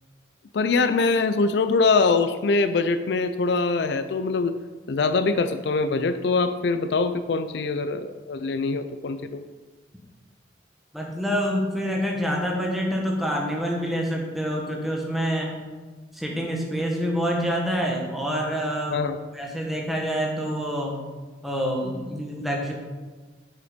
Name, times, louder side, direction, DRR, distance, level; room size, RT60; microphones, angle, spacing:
voice 1, 0.5-4.5 4.9-9.4 18.9-19.2, left 4 dB, 65° left, 10 dB, 0.4 m, -23 dB
voice 2, 10.9-15.5 16.1-21.0 21.4-22.7, equal, ahead, -1 dB, 1.3 m, -27 dB
8.3 x 5.6 x 5.1 m, 1.3 s
head